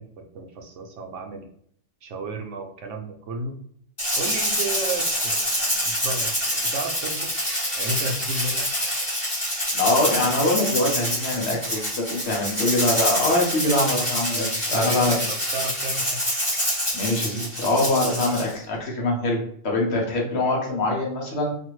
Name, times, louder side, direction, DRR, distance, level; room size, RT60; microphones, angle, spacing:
voice 1, 0.0-1.5 2.0-3.5 4.1-7.3 7.7-8.7 14.5-16.2, right 2 dB, 75° right, 2 dB, 0.9 m, -33 dB
Rattle (instrument), 4.0-18.5, equal, 20° left, 1.2 m, -26 dB
voice 2, 9.7-15.2 16.9-21.5, left 2 dB, 65° left, -1 dB, 1.0 m, -24 dB
2.7 x 2.5 x 3.0 m, 0.63 s
omnidirectional pair, 1.3 m